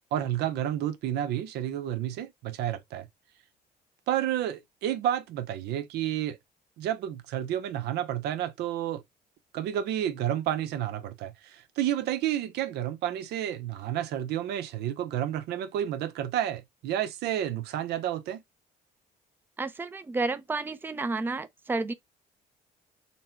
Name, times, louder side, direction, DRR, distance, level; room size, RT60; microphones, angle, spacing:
voice 1, 0.1-3.1 4.1-6.4 6.8-9.0 9.5-18.4, right 11 dB, 80° right, 0.7 m, -30 dB
voice 2, 19.6-21.9, right 3 dB, 10° right, 0.5 m, -31 dB
4.1 x 2.2 x 4.3 m
cardioid pair, 110°, 17 cm